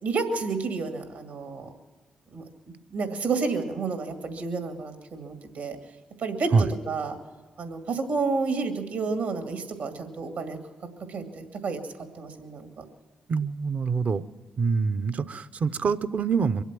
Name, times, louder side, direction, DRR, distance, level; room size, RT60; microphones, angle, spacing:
voice 1, 0.0-1.7 2.3-2.4 2.9-5.8 6.2-7.2 7.6-10.6 11.1-11.8 12.1-12.8, right 4 dB, 80° right, 6 dB, 2.2 m, -30 dB
voice 2, 13.3-14.2 14.6-16.6, right 5 dB, 55° right, 13 dB, 0.7 m, -25 dB
23.5 x 8.1 x 7.5 m, 1.3 s
supercardioid pair, 45°, 3 cm